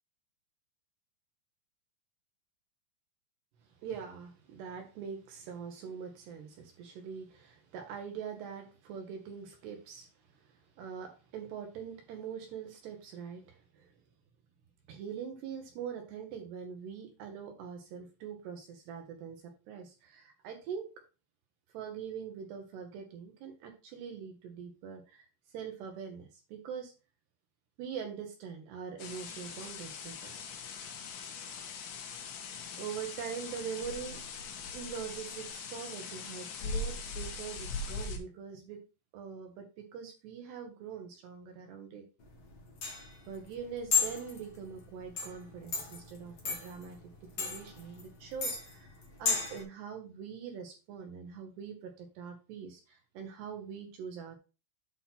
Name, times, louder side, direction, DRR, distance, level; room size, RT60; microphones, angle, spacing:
voice 1, 3.8-10.1 10.3-13.9 14.9-20.9 21.7-26.9 27.8-30.3 32.8-34.2 34.7-38.8 39.1-42.0 43.3-47.0 47.4-54.4, right 7 dB, 70° right, 3 dB, 2.9 m, -43 dB
sound 1, 29.0-38.2, left 4 dB, 70° left, 3.7 m, -41 dB
sound 2, 42.2-49.6, left 5 dB, 55° left, 1.7 m, -35 dB
8.7 x 3.9 x 5.9 m, 0.31 s
omnidirectional pair, 5.7 m